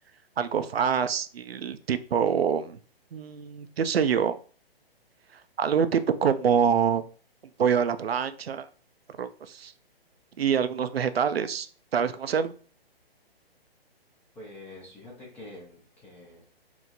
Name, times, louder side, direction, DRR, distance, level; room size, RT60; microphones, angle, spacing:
voice 1, 0.4-2.8 3.1-4.4 5.6-7.0 7.6-8.7 9.2-9.7 10.4-11.7 11.9-12.5, right 7 dB, 75° right, 11 dB, 0.5 m, -25 dB
voice 2, 14.3-16.4, left 1 dB, 5° left, -4 dB, 0.4 m, -46 dB
4.5 x 2.0 x 3.9 m, 0.40 s
figure-of-eight pair, 130°, 31 cm